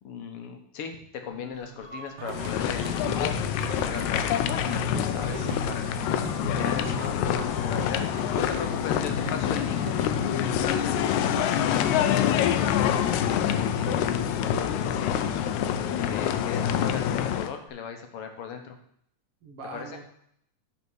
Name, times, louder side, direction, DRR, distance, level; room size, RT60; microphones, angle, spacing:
voice 1, 0.0-2.9 3.2-4.4 5.0-6.0 6.6-9.9 10.7-11.8 12.3-15.4 15.9-18.8 19.7-20.0, left 6 dB, 65° left, 5 dB, 1.6 m, -38 dB
sound 1, 1.2-17.3, equal, 5° left, 1.8 m, -47 dB
Singing, 2.2-14.6, right 8 dB, 80° right, 1.3 m, -42 dB
sound 2, 2.3-17.5, left 9 dB, 85° left, 2.0 m, -26 dB
voice 2, 19.4-20.0, right 2 dB, 55° right, 0 dB, 2.2 m, -42 dB
9.5 x 4.2 x 6.2 m, 0.67 s
omnidirectional pair, 3.3 m